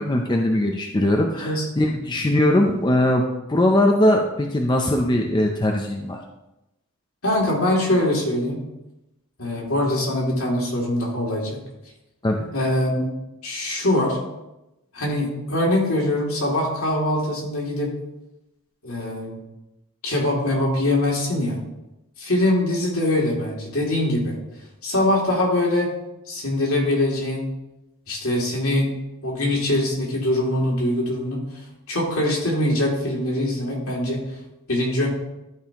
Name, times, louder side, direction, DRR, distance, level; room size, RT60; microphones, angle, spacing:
voice 1, 0.0-6.2 12.2-12.5, left 1 dB, 20° left, 2 dB, 0.5 m, -20 dB
voice 2, 7.2-8.6 9.4-11.6 12.5-13.1 13.4-14.2 14.9-17.9 18.8-19.4 20.0-21.6 22.2-24.4 24.8-25.9 26.3-27.4 28.1-28.9 29.2-31.4 31.9-34.2 34.7-35.1, left 1 dB, 70° left, -3 dB, 2.6 m, -23 dB
12.5 x 5.3 x 2.9 m, 0.93 s
head